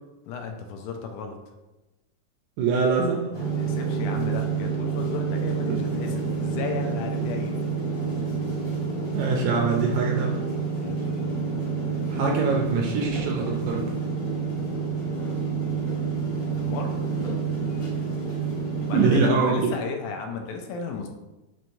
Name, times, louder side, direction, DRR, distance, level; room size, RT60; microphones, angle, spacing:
voice 1, 0.3-1.4 3.6-7.6 10.7-11.1 16.6-17.0 18.8-21.1, left 5 dB, 80° left, 4 dB, 2.0 m, -34 dB
voice 2, 2.6-3.5 5.7-5.8 9.1-10.4 12.1-13.9 18.9-19.7, right 4 dB, 80° right, 0 dB, 1.7 m, -24 dB
sound 1, 3.3-19.2, right 5 dB, 50° left, 1.0 m, -28 dB
5.9 x 3.0 x 2.6 m, 1.0 s
omnidirectional pair, 3.7 m